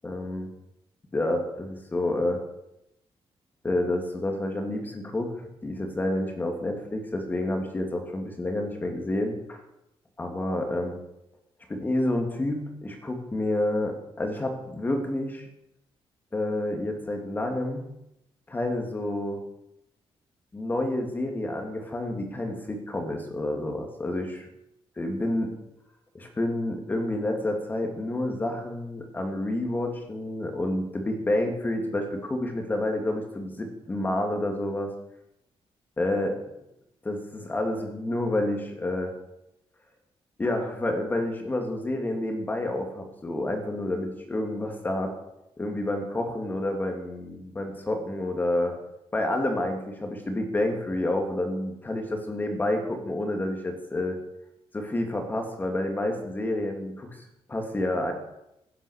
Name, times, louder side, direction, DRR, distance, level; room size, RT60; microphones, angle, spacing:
voice 1, 0.0-0.5 1.1-2.4 3.6-5.3 5.6-9.6 10.2-11.0 11.7-15.5 16.3-17.9 18.5-19.4 20.5-24.5 25.0-25.5 26.1-34.9 36.0-36.4 37.0-39.1 40.4-45.1 45.6-48.8 49.1-54.2 54.7-58.1, left 1 dB, 20° left, 3 dB, 2.6 m, -29 dB
16.5 x 9.9 x 6.6 m, 0.85 s
wide cardioid pair, 170°, 10 cm